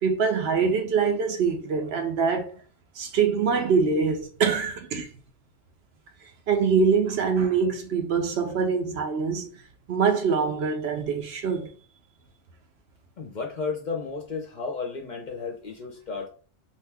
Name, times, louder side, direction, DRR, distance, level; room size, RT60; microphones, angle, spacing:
voice 1, 0.0-2.5 3.0-5.1 6.5-9.5 9.9-11.7, right 5 dB, 70° right, 0.8 m, -24 dB
voice 2, 13.2-16.3, left 4 dB, 50° left, 0.7 m, -33 dB
2.7 x 2.2 x 3.3 m
omnidirectional pair, 1.2 m